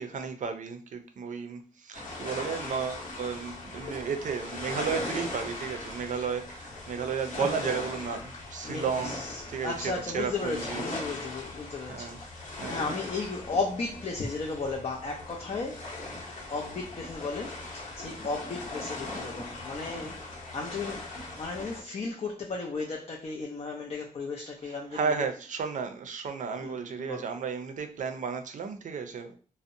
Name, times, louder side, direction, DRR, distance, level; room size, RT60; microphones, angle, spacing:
voice 1, 0.0-9.2 9.5-10.8 11.8-12.2 12.6-13.0 24.6-29.4, right 6 dB, 65° right, 0.4 m, -33 dB
sound 1, 1.9-21.8, left 2 dB, 65° left, 0.9 m, -39 dB
voice 2, 8.6-15.9 16.5-21.1 21.3-25.2 26.6-27.3, left 3 dB, 45° left, 0.5 m, -35 dB
2.6 x 2.0 x 2.5 m
wide cardioid pair, 90°, 14 cm